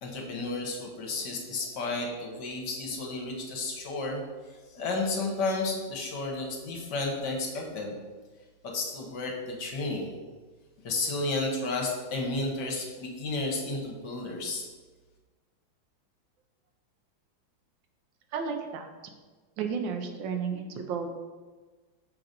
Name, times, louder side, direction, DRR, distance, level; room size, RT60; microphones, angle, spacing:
voice 1, 0.0-4.2 4.7-7.9 8.6-10.1 10.8-14.7, left 2 dB, 65° left, 1 dB, 1.5 m, -32 dB
voice 2, 18.3-18.9 19.6-21.3, right 6 dB, 75° right, 5 dB, 1.3 m, -33 dB
5.7 x 3.9 x 5.1 m, 1.3 s
omnidirectional pair, 2.1 m